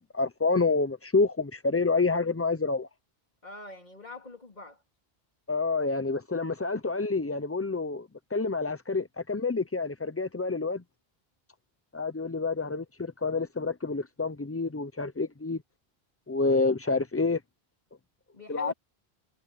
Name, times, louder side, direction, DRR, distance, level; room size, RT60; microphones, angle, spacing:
voice 1, 0.1-2.9 5.5-10.8 11.9-15.6 16.3-17.4 18.5-18.7, left 3 dB, 20° left, 0.4 m, -28 dB
voice 2, 3.4-4.8 18.3-18.7, left 1 dB, 45° left, 3.6 m, -44 dB
omnidirectional pair, 1.0 m